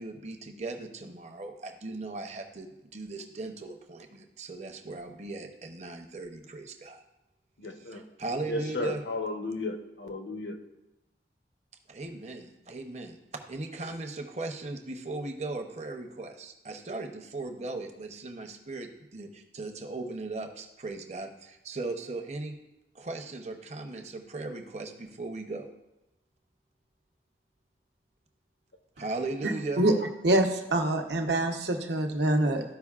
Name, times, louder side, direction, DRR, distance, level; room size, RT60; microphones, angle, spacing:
voice 1, 0.0-7.0 7.8-9.0 11.9-13.1 13.5-22.6 22.9-25.7 29.0-29.8, right 2 dB, 40° right, 5 dB, 0.7 m, -38 dB
voice 2, 7.6-8.0 8.4-10.6, left 2 dB, 85° left, 5 dB, 0.9 m, -34 dB
voice 3, 30.2-32.6, right 1 dB, 75° right, 3 dB, 0.9 m, -25 dB
13.5 x 5.1 x 2.4 m, 0.94 s
head